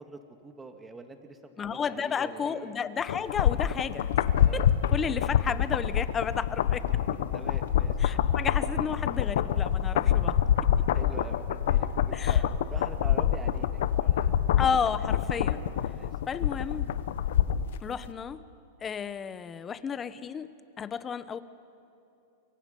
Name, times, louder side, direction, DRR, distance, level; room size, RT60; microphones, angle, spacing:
voice 1, 0.0-2.7 4.4-4.7 5.0-5.1 7.3-8.0 10.9-12.4 12.7-14.3 15.9-16.1, right 3 dB, 15° right, 6 dB, 2.2 m, -45 dB
voice 2, 1.6-4.1 4.5-6.8 8.0-10.3 12.1-12.4 14.6-15.6 16.3-16.9 17.8-18.4 18.8-20.5 20.8-21.4, left 7 dB, 25° left, 14 dB, 1.1 m, -32 dB
sound 1, 3.1-17.8 18.1-18.2, left 10 dB, 75° left, 1.0 m, -26 dB
28.5 x 23.5 x 5.5 m, 2.8 s
hypercardioid pair, 120°, 0 cm